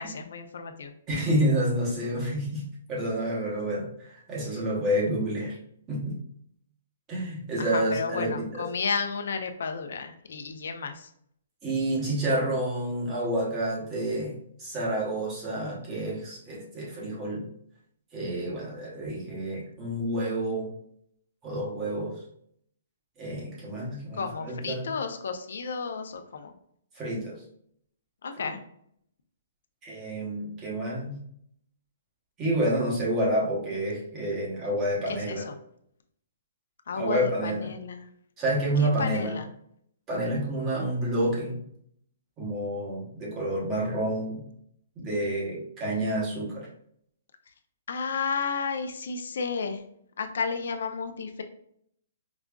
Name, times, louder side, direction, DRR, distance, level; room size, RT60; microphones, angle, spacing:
voice 1, 0.0-0.9 7.6-11.1 24.1-26.5 28.2-28.6 35.1-35.6 36.9-38.1 38.8-39.5 47.9-49.8 50.2-51.4, left 5 dB, 70° left, 7 dB, 0.5 m, -32 dB
voice 2, 1.1-5.6 5.9-6.2 7.1-8.7 11.6-17.4 18.1-20.7 21.4-22.1 23.2-24.9 27.0-27.4 29.8-31.2 32.4-35.5 37.0-37.7 38.4-39.3 40.1-41.6 42.4-44.4 45.0-46.7, right 1 dB, 15° right, -4 dB, 0.9 m, -29 dB
4.8 x 2.4 x 2.2 m, 0.68 s
hypercardioid pair, 170°, 0 cm